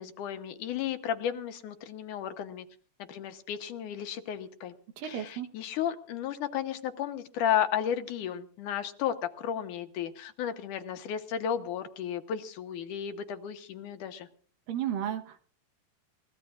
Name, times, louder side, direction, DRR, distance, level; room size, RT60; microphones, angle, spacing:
voice 1, 0.0-2.7 3.1-4.7 5.0-14.3, left 9 dB, 70° left, 8 dB, 2.4 m, -33 dB
voice 2, 5.0-5.5 14.7-15.4, right 10 dB, 80° right, 8 dB, 2.8 m, -33 dB
29.0 x 15.5 x 2.5 m, 0.42 s
omnidirectional pair, 3.9 m